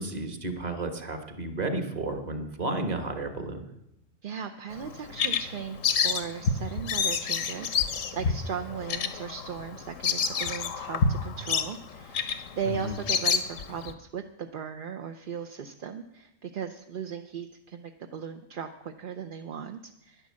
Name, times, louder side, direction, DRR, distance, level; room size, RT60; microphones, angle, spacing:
voice 1, 0.0-3.7 12.7-13.0, right 2 dB, 35° right, 6 dB, 1.4 m, -32 dB
voice 2, 4.2-12.3 12.5-20.3, right 7 dB, 50° right, 6 dB, 0.7 m, -37 dB
Bird vocalization bird call bird song, 4.7-13.9, left 6 dB, 85° left, 1.2 m, -29 dB
10.5 x 10.5 x 7.4 m, 0.85 s
omnidirectional pair, 1.3 m